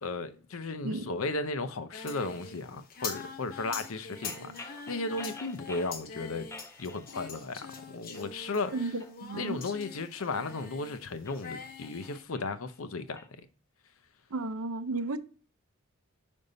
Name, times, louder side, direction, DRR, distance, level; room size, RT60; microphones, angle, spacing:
voice 1, 0.0-6.5 6.8-8.7 9.3-13.5, left 3 dB, 75° left, 0.7 m, -35 dB
Singing, 1.9-11.0 11.3-12.2, left 5 dB, 45° left, 0.9 m, -44 dB
sound 1, 4.2-6.0 6.5-7.5 7.8-8.3 8.8-10.7 11.1-13.3, left 2 dB, 15° left, 0.5 m, -49 dB
voice 2, 8.7-9.6 14.3-15.2, right 3 dB, 75° right, 0.6 m, -33 dB
5.4 x 5.3 x 4.0 m
head